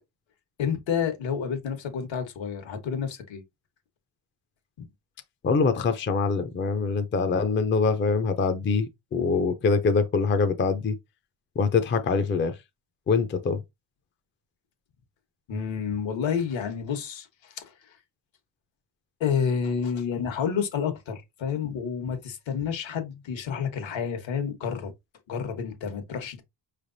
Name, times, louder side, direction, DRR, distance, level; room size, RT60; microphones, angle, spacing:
voice 1, 0.6-3.4 4.8-4.9 15.5-18.0 19.2-24.9 25.3-26.4, left 7 dB, 75° left, 1.3 m, -29 dB
voice 2, 5.4-11.0 11.6-12.5 13.1-13.6, left 4 dB, 25° left, 0.4 m, -24 dB
5.5 x 3.3 x 2.6 m
wide cardioid pair, 170°, 46 cm